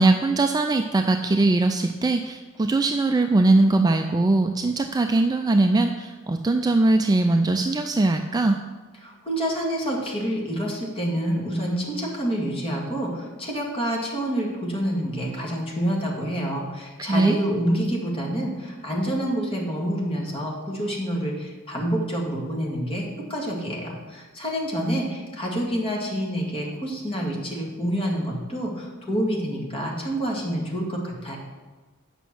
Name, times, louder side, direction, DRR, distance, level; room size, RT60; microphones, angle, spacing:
voice 1, 0.0-8.6 17.0-17.4, right 2 dB, 20° right, 6 dB, 0.3 m, -21 dB
voice 2, 9.0-31.4, equal, 25° left, -2 dB, 1.8 m, -27 dB
8.2 x 5.9 x 6.0 m, 1.3 s
head